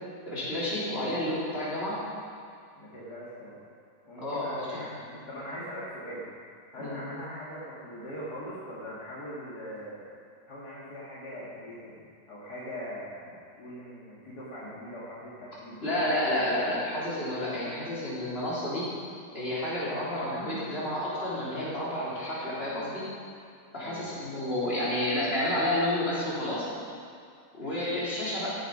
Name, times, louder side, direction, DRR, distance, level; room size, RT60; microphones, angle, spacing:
voice 1, 0.3-2.0 4.2-4.9 6.8-7.0 15.8-18.9 19.3-23.0 23.7-26.7 27.6-28.6, left 1 dB, 35° left, -9 dB, 4.1 m, -30 dB
voice 2, 2.8-3.6 4.1-6.3 6.7-10.0 10.5-15.9 23.7-24.2, equal, 65° left, -8 dB, 2.8 m, -41 dB
14.0 x 10.5 x 5.4 m, 2.2 s
omnidirectional pair, 1.8 m